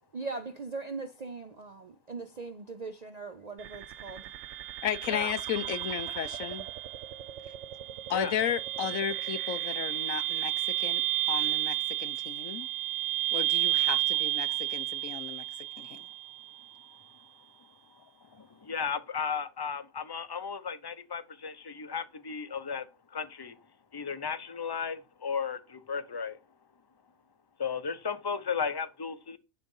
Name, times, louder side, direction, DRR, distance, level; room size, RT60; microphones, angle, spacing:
voice 1, 0.1-4.3, right 4 dB, 45° right, 0.5 m, -40 dB
sound 1, 3.6-16.6, right 16 dB, 65° right, 0.9 m, -32 dB
voice 2, 4.8-6.7 8.1-11.0 11.3-12.7 13.3-15.4 15.8-16.0, left 9 dB, 80° left, 1.2 m, -34 dB
voice 3, 18.2-22.9 23.1-23.6 23.9-26.4 27.6-29.4, left 6 dB, 25° left, 0.6 m, -35 dB
11.0 x 3.8 x 5.5 m
omnidirectional pair, 1.4 m